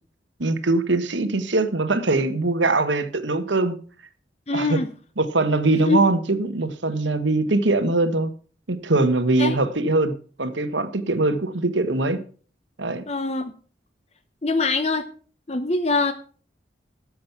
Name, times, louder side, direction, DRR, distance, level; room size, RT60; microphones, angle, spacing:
voice 1, 0.4-3.8 4.5-4.8 5.2-8.3 8.7-12.2 12.8-13.0, right 2 dB, 80° right, 10 dB, 1.5 m, -22 dB
voice 2, 4.5-4.9 5.9-6.0 9.4-9.6 13.1-13.5 14.4-15.1 15.5-16.1, left 3 dB, 35° left, 9 dB, 0.8 m, -23 dB
13.0 x 7.6 x 5.9 m, 0.41 s
head